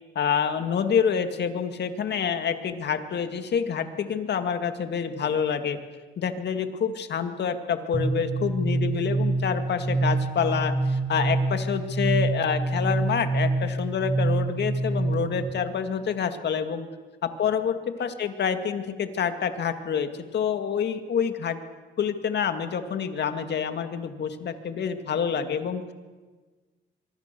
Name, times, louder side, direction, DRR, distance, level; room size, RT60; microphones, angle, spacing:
voice 1, 0.2-5.8 6.2-16.9 17.2-21.6 22.0-25.9, left 7 dB, 60° left, 8 dB, 2.2 m, -27 dB
sound 1, 7.9-15.5, right 2 dB, 20° right, 3.2 m, -26 dB
24.5 x 23.0 x 6.9 m, 1.4 s
cardioid pair, 90°, 20 cm